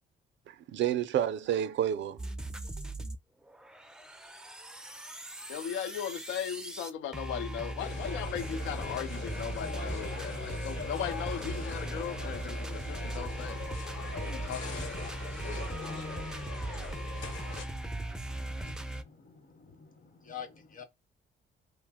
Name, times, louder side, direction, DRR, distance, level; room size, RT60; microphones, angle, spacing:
voice 1, 0.5-2.2, right 10 dB, 70° right, 0.5 m, -30 dB
sound 1, 2.2-3.2 3.5-19.0, right 1 dB, 5° right, 0.4 m, -38 dB
voice 2, 5.5-13.6 14.1-15.0, left 9 dB, 90° left, 0.4 m, -38 dB
sound 2, 7.8-17.6, left 5 dB, 70° left, 1.0 m, -42 dB
voice 3, 18.3-20.8, left 8 dB, 45° left, 0.8 m, -48 dB
2.6 x 2.0 x 3.5 m
cardioid pair, 90°, 20 cm